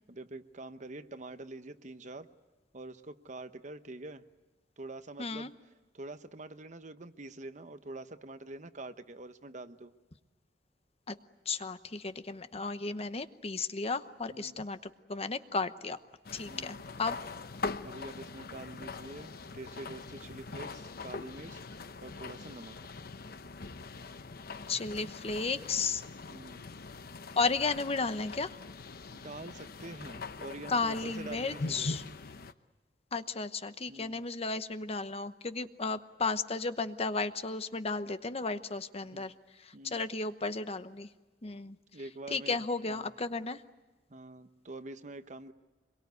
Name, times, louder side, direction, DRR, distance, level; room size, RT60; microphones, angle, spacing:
voice 1, 0.1-2.3 2.7-4.2 4.8-5.5 5.9-9.9 14.3-14.6 16.5-16.9 17.8-21.6 22.0-22.9 26.3-26.6 29.1-31.9 33.9-34.2 39.1-39.3 39.7-40.0 41.9-43.1 44.1-45.5, right 2 dB, 45° right, 10 dB, 1.0 m, -46 dB
voice 2, 5.2-5.5 11.1-11.2 11.5-14.8 15.1-16.0 16.3-17.2 24.7-26.0 27.4-28.5 30.7-32.0 33.1-39.3 39.6-41.1 41.4-41.8 42.3-43.6, left 4 dB, 35° left, 11 dB, 0.9 m, -34 dB
sound 1, 16.2-32.5, left 3 dB, 60° left, 0.9 m, -42 dB
26.0 x 22.5 x 9.4 m, 1.2 s
head